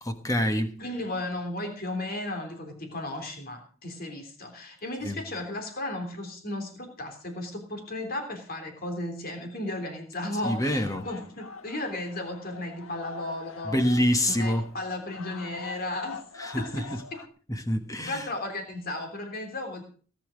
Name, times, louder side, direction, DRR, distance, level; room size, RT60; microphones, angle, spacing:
voice 1, 0.0-0.8 5.0-5.2 10.4-11.1 13.6-14.7 16.4-16.8 17.5-18.3, equal, 15° left, 1.4 m, -26 dB
voice 2, 0.8-13.8 14.3-16.2 16.6-17.2 18.1-19.8, left 1 dB, 45° left, 3.4 m, -35 dB
sound 1, 10.3-17.3, left 4 dB, 80° left, 1.3 m, -44 dB
18.0 x 10.0 x 5.1 m
head